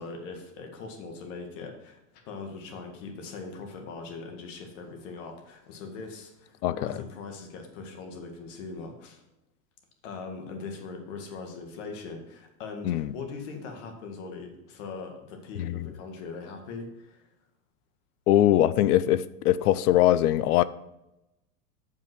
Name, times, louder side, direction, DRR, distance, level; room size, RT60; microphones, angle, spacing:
voice 1, 0.0-9.2 10.0-17.3, left 4 dB, 50° left, 3 dB, 1.9 m, -41 dB
voice 2, 6.6-7.0 12.8-13.1 15.6-15.9 18.3-20.6, left 13 dB, 75° left, 16 dB, 0.6 m, -22 dB
7.0 x 5.6 x 6.1 m, 0.91 s
supercardioid pair, 155°, 46 cm